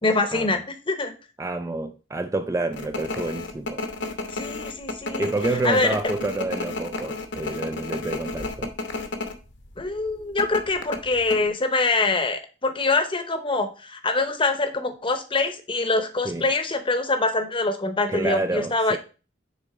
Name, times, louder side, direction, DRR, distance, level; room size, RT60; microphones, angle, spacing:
voice 1, 0.0-1.1 4.3-5.3 5.6-5.9 9.8-19.0, left 3 dB, 25° left, 0.8 m, -24 dB
voice 2, 1.4-3.8 5.2-8.7 16.3-16.5 18.1-19.0, right 2 dB, 15° right, 0.3 m, -28 dB
sound 1, 2.7-9.4 9.6-9.8 10.4-11.4, left 3 dB, 60° left, 0.9 m, -32 dB
6.7 x 3.6 x 4.7 m
head